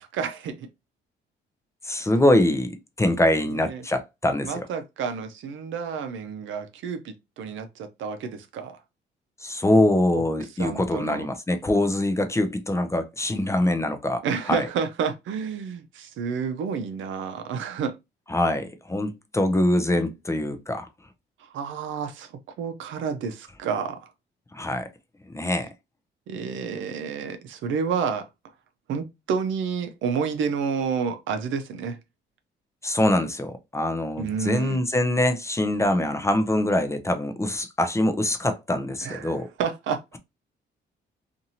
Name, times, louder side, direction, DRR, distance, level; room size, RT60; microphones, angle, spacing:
voice 1, 0.1-0.7 3.5-3.8 4.4-8.8 10.1-10.2 10.6-11.3 14.2-18.0 21.5-22.3 22.6-24.1 26.3-28.3 28.9-32.0 34.2-34.8 39.0-40.0, right 6 dB, 75° right, 0.6 m, -30 dB
voice 2, 1.8-4.7 9.4-14.2 14.5-14.7 18.3-20.9 24.5-24.9 25.3-25.7 32.8-39.5, left 1 dB, 15° left, 0.5 m, -24 dB
2.7 x 2.5 x 2.8 m
cardioid pair, 90°, 20 cm